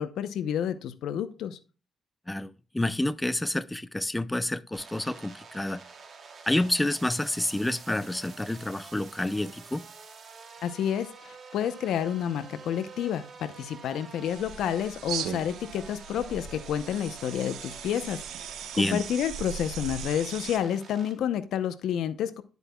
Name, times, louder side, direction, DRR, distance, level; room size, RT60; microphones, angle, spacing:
voice 1, 0.0-1.6 10.6-18.2 18.7-22.4, left 9 dB, 80° left, 0.7 m, -30 dB
voice 2, 2.3-5.8 6.5-9.8 18.8-19.0, left 1 dB, 10° left, 0.4 m, -29 dB
sound 1, 4.7-21.1, right 5 dB, 50° right, 2.2 m, -48 dB
sound 2, 14.2-20.6, right 8 dB, 85° right, 0.9 m, -39 dB
10.0 x 8.1 x 2.2 m
cardioid pair, 90°, 0 cm